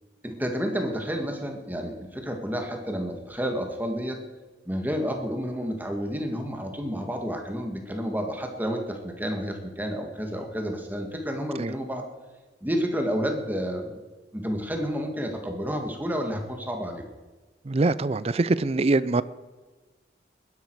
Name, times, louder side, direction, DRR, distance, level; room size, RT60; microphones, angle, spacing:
voice 1, 0.2-4.2 4.7-12.0 12.6-14.0 14.3-17.0, equal, 10° right, 3 dB, 1.8 m, -30 dB
voice 2, 17.7-19.2, right 3 dB, 35° right, 17 dB, 0.5 m, -23 dB
19.5 x 11.0 x 4.7 m, 1.3 s
head